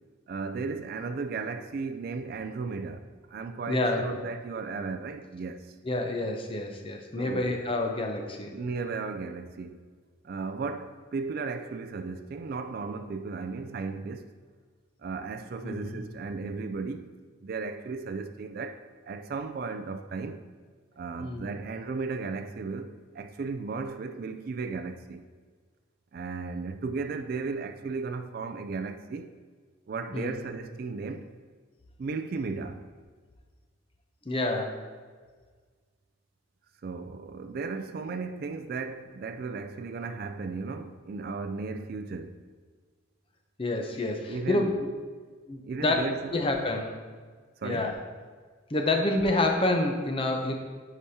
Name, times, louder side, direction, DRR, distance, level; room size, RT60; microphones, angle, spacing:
voice 1, 0.3-5.8 7.2-7.6 8.5-9.8 10.2-14.3 15.0-17.1 17.4-20.4 21.0-25.2 26.1-29.3 29.9-31.3 32.0-32.8 36.8-42.4 44.3-44.7 45.6-46.3 47.6-47.9, right 4 dB, 45° right, 0.3 m, -35 dB
voice 2, 3.7-4.0 5.8-8.5 15.6-16.0 21.2-21.5 30.1-30.4 34.3-34.8 43.6-44.9 45.5-46.0 46.3-47.0 47.6-47.9 48.7-50.5, left 2 dB, 25° left, 0.6 m, -28 dB
9.9 x 4.9 x 2.7 m
head